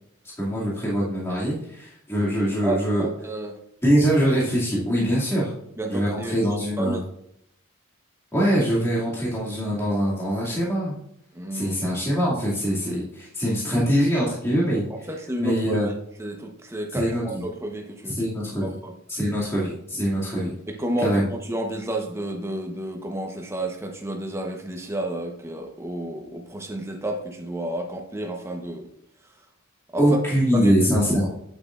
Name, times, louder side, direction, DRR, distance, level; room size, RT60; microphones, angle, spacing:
voice 1, 0.4-3.1 3.8-5.5 5.9-7.0 8.3-10.9 11.5-14.9 15.4-15.9 16.9-17.4 18.1-18.7 19.1-20.5 21.0-21.3 30.0-31.3, equal, 10° left, -8 dB, 2.4 m, -23 dB
voice 2, 2.6-3.6 5.8-7.0 11.3-11.8 15.1-15.8 16.2-17.1 17.4-18.2 18.6-18.9 20.7-28.9 29.9-30.0 30.5-30.7, right 1 dB, 10° right, 2 dB, 1.0 m, -31 dB
8.6 x 8.5 x 2.5 m, 0.74 s
head